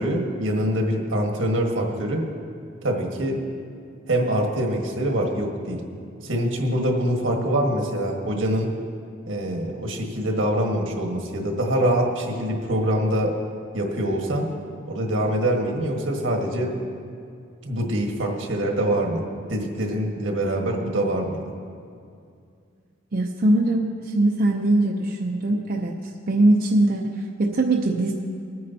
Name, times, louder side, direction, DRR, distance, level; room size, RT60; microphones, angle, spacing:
voice 1, 0.0-2.2 2.8-3.4 4.1-5.8 6.2-8.7 9.3-13.3 13.7-14.5 14.9-16.7 17.6-19.2 19.5-21.4, right 1 dB, 85° right, 1 dB, 1.5 m, -24 dB
voice 2, 23.1-25.9 26.3-28.1, right 2 dB, 50° right, 0 dB, 0.6 m, -21 dB
22.5 x 9.5 x 2.8 m, 2.3 s
head